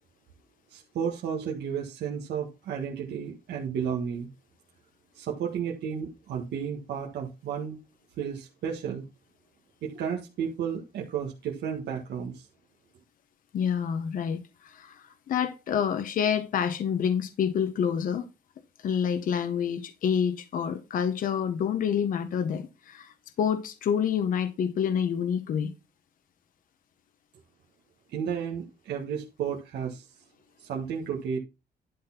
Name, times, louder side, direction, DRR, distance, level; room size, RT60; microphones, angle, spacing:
voice 1, 0.7-4.3 5.1-7.8 8.2-9.1 9.8-12.5 28.1-30.1 30.6-31.4, right 7 dB, 85° right, 1.6 m, -32 dB
voice 2, 13.5-18.2 18.8-25.7, left 8 dB, 55° left, 0.9 m, -28 dB
11.5 x 4.2 x 5.7 m
cardioid pair, 165°, 17 cm